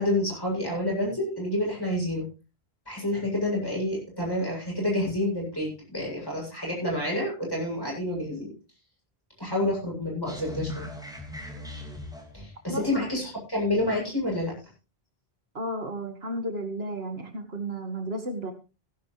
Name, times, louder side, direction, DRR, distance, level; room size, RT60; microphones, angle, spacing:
voice 1, 0.0-2.3 2.9-8.5 9.4-10.9 12.3-14.5, left 1 dB, 20° left, -3 dB, 7.9 m, -28 dB
sound 1, 10.3-12.5, left 1 dB, 5° right, 2.6 m, -38 dB
voice 2, 12.7-13.1 15.5-18.5, right 1 dB, 75° right, 5 dB, 2.3 m, -33 dB
16.5 x 11.0 x 3.3 m, 0.31 s
omnidirectional pair, 1.0 m